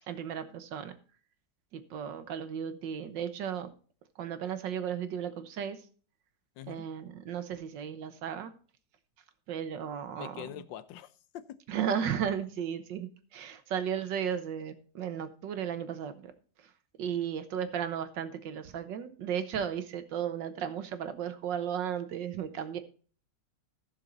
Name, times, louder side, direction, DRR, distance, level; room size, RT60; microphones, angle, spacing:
voice 1, 0.1-1.0 1.7-3.7 4.2-5.8 6.7-8.5 9.5-10.4 11.7-16.3 17.0-22.8, right 8 dB, 85° right, 1.7 m, -35 dB
voice 2, 6.6-6.9 10.2-11.6, left 11 dB, 90° left, 1.4 m, -44 dB
15.0 x 6.4 x 4.0 m
omnidirectional pair, 1.9 m